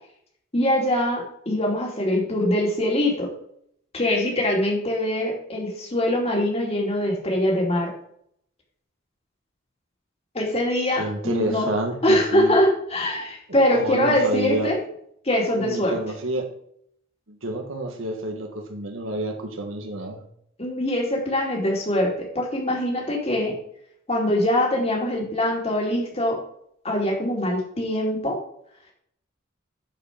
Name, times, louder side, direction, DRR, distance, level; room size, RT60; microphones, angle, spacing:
voice 1, 0.5-3.3 3.9-7.9 10.3-11.7 12.0-14.8 15.3-16.0 20.6-23.5 24.1-26.4 26.8-28.4, left 1 dB, 30° left, 0 dB, 2.5 m, -23 dB
voice 2, 11.0-12.6 13.7-14.7 15.6-16.5 17.3-20.2, right 1 dB, 85° right, 3 dB, 1.6 m, -29 dB
10.5 x 5.0 x 5.0 m, 0.69 s
head